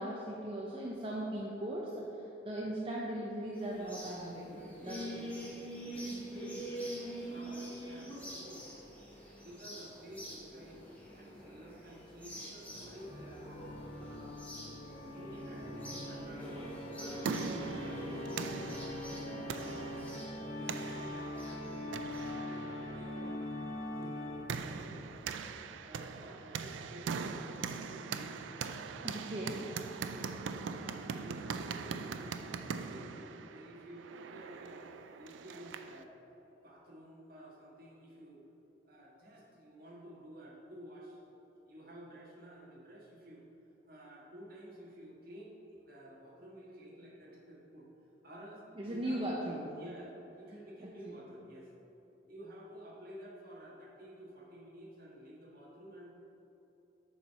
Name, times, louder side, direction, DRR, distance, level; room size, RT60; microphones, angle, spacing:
voice 1, 0.0-5.3 29.0-29.6 48.8-49.7 50.8-51.2, right 1 dB, 30° right, -4 dB, 0.6 m, -39 dB
sound 1, 3.5-22.3, equal, 10° left, 1.2 m, -46 dB
voice 2, 5.8-8.6 9.4-10.8 11.1-13.5 13.9-14.4 15.1-16.6 16.9-20.0 20.5-25.2 25.8-28.5 29.9-30.4 30.7-36.1 36.6-38.4 38.8-41.2 41.6-43.4 43.9-47.9 48.2-49.4 49.8-51.7 52.2-56.1, right 1 dB, 50° right, -4 dB, 1.5 m, -52 dB
Organ, 13.0-24.8, left 1 dB, 40° left, 1.0 m, -42 dB
sound 2, 16.8-36.0, right 5 dB, 90° right, 0.4 m, -42 dB
7.1 x 4.5 x 5.5 m, 3.0 s
head